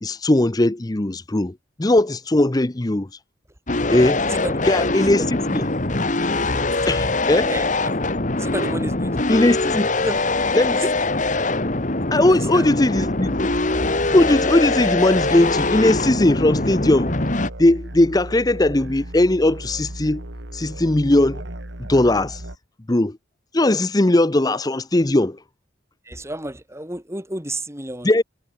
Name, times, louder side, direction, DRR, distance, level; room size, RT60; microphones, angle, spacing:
voice 1, 0.0-3.2 3.9-4.2 4.6-5.7 6.9-7.6 9.3-9.9 10.5-10.9 12.1-13.3 14.1-17.2 17.6-20.2 20.5-21.4 21.9-22.4 22.9-23.2 23.5-25.4 28.0-28.2, left 1 dB, 20° left, 0.7 m, -19 dB
sound 1, 3.7-17.5, left 2 dB, 40° left, 1.7 m, -23 dB
voice 2, 4.3-4.7 5.2-5.8 6.4-6.8 7.5-10.4 11.1-11.3 12.1-12.7 26.0-28.2, right 1 dB, 15° right, 4.2 m, -33 dB
sound 2, 12.9-22.6, right 1 dB, 70° right, 2.4 m, -35 dB
head